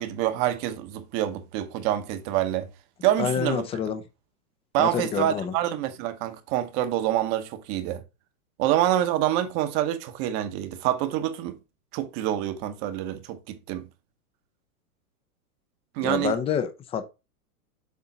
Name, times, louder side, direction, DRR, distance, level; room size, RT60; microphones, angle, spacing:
voice 1, 0.0-2.7 3.0-3.7 4.7-8.0 8.6-11.6 11.9-13.9 15.9-16.4, right 12 dB, 35° right, 1.0 m, -26 dB
voice 2, 3.2-4.0 4.8-5.5 16.0-17.0, left 7 dB, 15° left, 0.5 m, -27 dB
7.2 x 3.6 x 4.0 m
hypercardioid pair, 135°, 45 cm